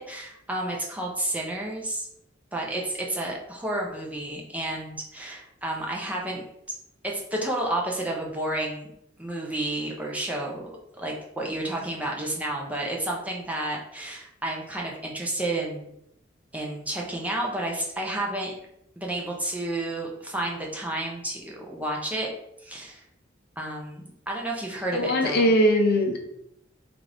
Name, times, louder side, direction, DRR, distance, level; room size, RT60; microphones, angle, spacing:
voice 1, 0.0-2.1 2.5-6.4 7.0-8.9 9.2-10.7 11.0-15.9 16.5-18.5 19.0-22.3 22.6-23.0 23.6-25.5, right 1 dB, 5° right, -2 dB, 0.5 m, -31 dB
voice 2, 24.9-26.2, equal, 50° left, 3 dB, 0.5 m, -21 dB
3.7 x 2.5 x 3.3 m, 0.78 s
head